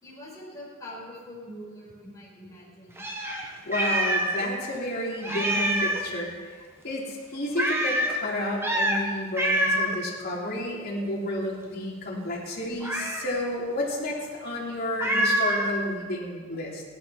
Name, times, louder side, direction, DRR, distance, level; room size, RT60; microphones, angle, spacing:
voice 1, 0.0-3.0 5.3-5.4, left 1 dB, 15° left, -7 dB, 4.9 m, -43 dB
Meow, 3.0-4.5 4.7-4.8 5.2-6.1 7.6-8.2 8.6-9.0 9.4-10.0 12.8-13.4 15.0-15.7, right 1 dB, 15° right, 1.6 m, -26 dB
voice 2, 3.6-6.6 6.8-16.8, left 1 dB, 50° left, -4 dB, 3.6 m, -31 dB
16.5 x 11.5 x 5.9 m, 1.5 s
head